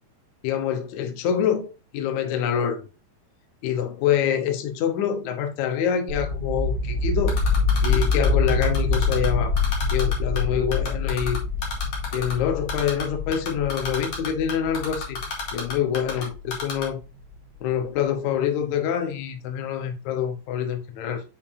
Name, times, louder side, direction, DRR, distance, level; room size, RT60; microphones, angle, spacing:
voice 1, 0.4-2.8 3.6-7.4 7.8-9.6 9.9-11.4 12.1-15.2 15.5-17.0 17.6-21.2, left 8 dB, 70° left, 1.9 m, -26 dB
sound 1, 6.1-16.8, left 3 dB, 65° right, 1.8 m, -25 dB
Typing, 7.3-9.3 9.6-10.4 10.7-12.3 12.7-13.0 13.3-16.2 16.5-16.9, left 4 dB, 45° left, 2.3 m, -31 dB
7.0 x 5.2 x 2.7 m
omnidirectional pair, 4.5 m